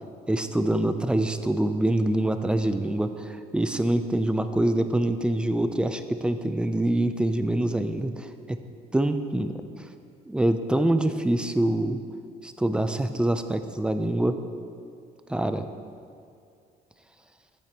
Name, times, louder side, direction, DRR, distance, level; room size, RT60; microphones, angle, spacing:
voice 1, 0.3-8.6 8.9-9.5 10.3-12.0 12.4-14.4 15.3-15.6, right 1 dB, 5° right, 9 dB, 0.5 m, -25 dB
12.5 x 8.4 x 3.0 m, 2.4 s
cardioid pair, 110°, 17 cm